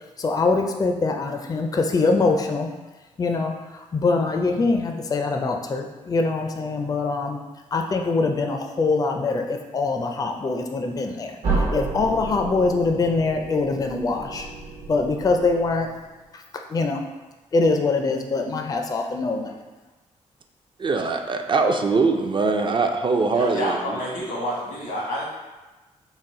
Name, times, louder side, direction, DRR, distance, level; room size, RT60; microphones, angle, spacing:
voice 1, 0.2-2.7 3.2-7.4 7.7-14.5 14.9-15.9 16.3-16.4 16.7-17.0 17.5-19.6, left 3 dB, 30° left, 4 dB, 0.4 m, -23 dB
sound 1, 11.4-16.2, right 3 dB, 70° right, 1.0 m, -31 dB
voice 2, 20.8-24.0, right 4 dB, 35° right, 5 dB, 0.4 m, -22 dB
voice 3, 23.3-25.2, equal, 90° left, -4 dB, 1.1 m, -28 dB
4.0 x 2.1 x 3.6 m, 1.2 s
cardioid pair, 70°, 14 cm